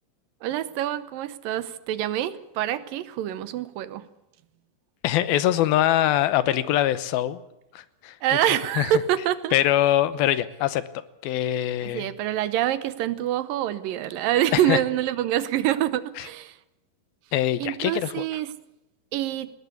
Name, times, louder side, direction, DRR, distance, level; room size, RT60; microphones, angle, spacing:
voice 1, 0.4-4.0 8.2-9.6 11.8-16.6 17.6-18.5 19.1-19.5, right 12 dB, 75° right, 15 dB, 2.5 m, -26 dB
voice 2, 5.0-7.4 7.7-8.2 8.8-8.9 9.5-10.8 11.2-12.1 14.5-14.8 16.2-16.3 17.3-18.1, left 13 dB, 85° left, 15 dB, 2.9 m, -23 dB
20.0 x 16.5 x 8.4 m, 0.91 s
omnidirectional pair, 4.2 m